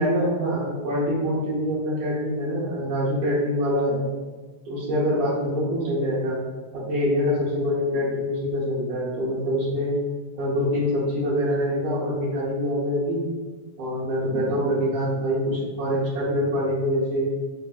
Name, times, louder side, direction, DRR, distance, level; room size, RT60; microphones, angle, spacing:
voice 1, 0.0-4.1 4.7-6.4 6.7-9.9 10.3-13.3 13.8-17.3, equal, 75° right, -8 dB, 2.3 m, -25 dB
5.2 x 2.6 x 2.3 m, 1.3 s
omnidirectional pair, 3.5 m